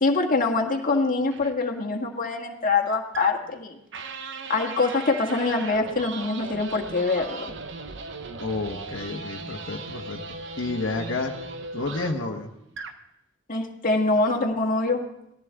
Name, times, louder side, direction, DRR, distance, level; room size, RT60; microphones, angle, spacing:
voice 1, 0.0-3.7 4.5-7.5 13.5-15.0, left 3 dB, 45° left, 2 dB, 1.7 m, -24 dB
sound 1, 1.3-1.5 3.1-3.5 3.9-12.3 12.7-13.0, right 3 dB, 65° right, 0.9 m, -38 dB
voice 2, 8.4-10.2 10.6-11.3 11.7-12.5, left 3 dB, 80° left, 2 dB, 1.1 m, -30 dB
18.0 x 14.5 x 3.5 m, 0.81 s
head